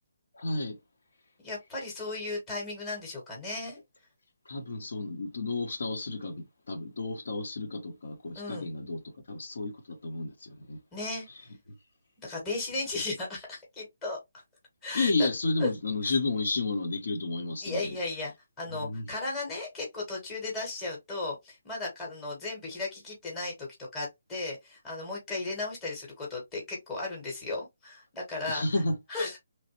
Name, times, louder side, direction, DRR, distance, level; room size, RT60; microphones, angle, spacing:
voice 1, 0.3-0.8 4.5-9.0 9.3-10.8 14.9-18.0 18.7-19.1 28.5-29.0, left 3 dB, 70° left, 0.9 m, -31 dB
voice 2, 1.4-3.8 8.3-8.7 10.9-11.2 12.2-14.2 14.8-15.3 15.6-15.7 16.0-16.1 17.6-28.6 29.1-29.4, left 2 dB, 10° left, 1.0 m, -35 dB
3.1 x 2.1 x 2.9 m
hypercardioid pair, 170°, 0 cm